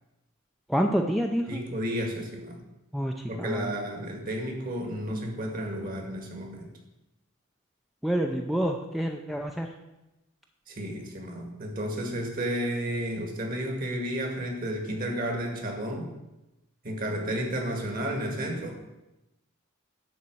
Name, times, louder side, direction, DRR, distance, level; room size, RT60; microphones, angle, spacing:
voice 1, 0.7-1.6 2.9-3.7 8.0-9.7, equal, ahead, 2 dB, 0.5 m, -28 dB
voice 2, 1.5-2.6 3.3-6.7 10.7-16.1 16.8-18.8, equal, 45° right, 3 dB, 1.9 m, -32 dB
11.0 x 4.3 x 7.8 m, 0.97 s
head